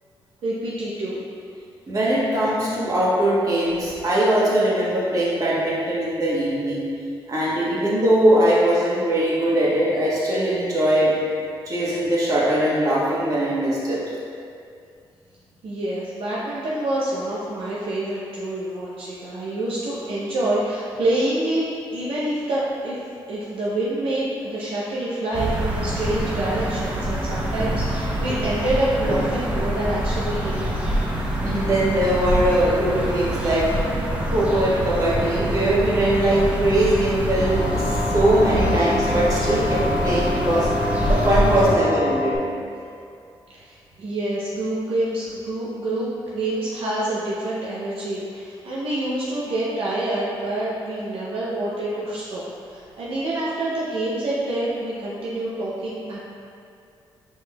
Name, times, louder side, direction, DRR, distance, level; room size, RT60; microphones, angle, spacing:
voice 1, 0.4-1.2 15.6-21.6 21.9-23.0 23.3-30.8 43.5-56.2, right 1 dB, 75° right, -7 dB, 0.6 m, -27 dB
voice 2, 1.9-6.8 7.3-11.1 11.6-14.0 31.4-33.8 34.3-40.7 41.0-42.3, right 1 dB, 40° right, -7 dB, 1.4 m, -21 dB
sound 1, 25.3-41.8, right 1 dB, 15° right, 0.8 m, -25 dB
sound 2, 37.4-42.4, left 3 dB, 30° left, 1.2 m, -27 dB
4.7 x 4.4 x 2.3 m, 2.4 s
cardioid pair, 80°, 9 cm